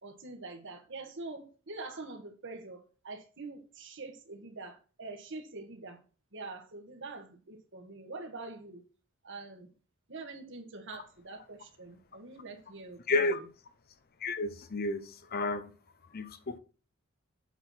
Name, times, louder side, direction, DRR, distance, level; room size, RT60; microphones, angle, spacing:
voice 1, 0.0-6.0 6.3-8.8 9.2-9.7 10.1-13.5, right 3 dB, 60° right, 1.7 m, -45 dB
voice 2, 13.1-13.4 14.2-15.7 16.1-16.6, left 2 dB, 45° left, 0.8 m, -31 dB
8.0 x 4.6 x 5.9 m
head